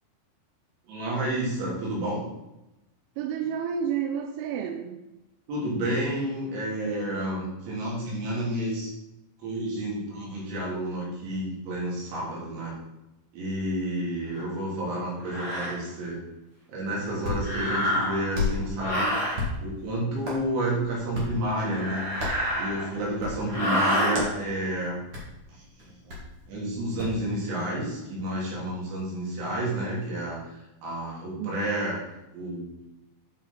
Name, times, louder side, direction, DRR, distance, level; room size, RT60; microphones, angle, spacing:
voice 1, 0.9-2.2 5.5-8.9 9.4-12.7 13.3-16.2 16.7-19.1 19.6-22.1 22.6-25.0 25.5-25.6 26.0-26.2 26.5-30.4 30.8-32.0 32.3-32.7, right 1 dB, 70° right, -5 dB, 4.8 m, -30 dB
voice 2, 3.2-5.1 31.4-31.5, right 8 dB, 90° right, 4 dB, 3.2 m, -30 dB
sound 1, 14.3-14.5 15.2-15.8 17.4-18.3 18.8-19.4 21.6-23.0 23.5-24.2, equal, 35° left, 3.8 m, -28 dB
Hands, 16.9-27.2, left 2 dB, 45° right, 1.8 m, -36 dB
9.3 x 5.8 x 4.1 m, 0.95 s
omnidirectional pair, 5.6 m